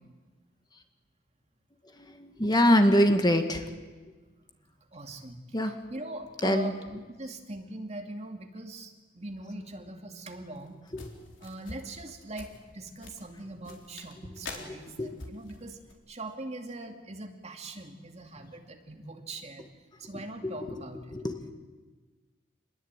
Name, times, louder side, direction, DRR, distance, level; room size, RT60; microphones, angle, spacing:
voice 1, 2.0-3.7 5.5-5.7 6.4-6.7 10.9-11.1 14.7-15.2 20.4-20.8 21.1-21.5, equal, 20° left, 6 dB, 1.7 m, -25 dB
voice 2, 4.9-11.0 11.4-15.8 16.1-19.7 20.0-21.2, right 2 dB, 35° right, 4 dB, 2.4 m, -41 dB
sound 1, 10.5-15.9, left 3 dB, 70° left, 4.2 m, -46 dB
27.5 x 21.5 x 9.0 m, 1.3 s
head